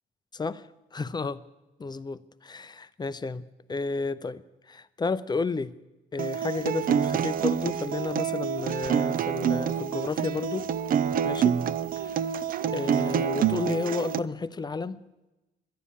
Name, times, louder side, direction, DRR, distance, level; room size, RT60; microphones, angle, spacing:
voice 1, 0.3-1.4 1.8-5.7 6.1-10.7 11.2-11.6 12.0-12.2 12.7-15.0, left 4 dB, 25° left, 0.5 m, -32 dB
Acoustic guitar, 6.2-14.2, right 8 dB, 50° right, 0.4 m, -27 dB
11.5 x 9.9 x 8.4 m
cardioid pair, 80°, 19 cm